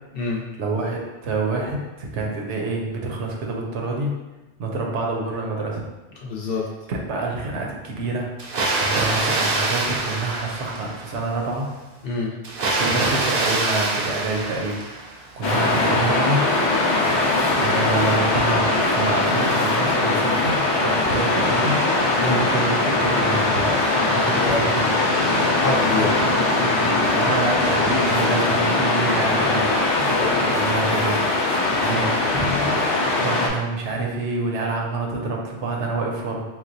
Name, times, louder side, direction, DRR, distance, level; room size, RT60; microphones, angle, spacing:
voice 1, 0.6-4.1 4.6-5.8 6.9-8.3 8.8-11.7 12.7-16.5 17.6-21.8 22.3-23.7 24.0-25.2 26.0-29.7 30.6-31.2 31.8-32.3 33.2-36.4, right 3 dB, 80° right, 0 dB, 0.9 m, -27 dB
voice 2, 6.2-6.7 12.0-12.3 22.1-22.4 24.3-24.6 25.5-26.1 30.1-30.7, left 3 dB, 60° left, -3 dB, 0.8 m, -26 dB
Water, 8.4-11.2 12.4-15.3, right 2 dB, 60° right, 0.7 m, -24 dB
Waves surf, 15.4-33.5, left 2 dB, 40° left, 0.4 m, -21 dB
4.5 x 2.0 x 2.6 m, 1.1 s
omnidirectional pair, 1.2 m